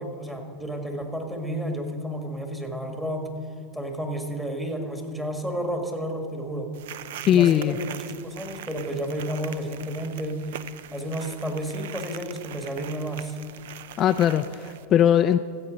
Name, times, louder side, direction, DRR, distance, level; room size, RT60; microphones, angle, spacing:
voice 1, 0.0-3.3 3.7-6.7 7.2-10.4 10.9-13.4, equal, 5° right, 3 dB, 1.7 m, -31 dB
sound 1, 6.7-14.9, right 11 dB, 75° right, 0.4 m, -42 dB
voice 2, 7.3-7.8 14.0-15.4, left 10 dB, 35° left, 9 dB, 0.3 m, -20 dB
14.0 x 7.8 x 5.2 m, 2.5 s
hypercardioid pair, 110°, 0 cm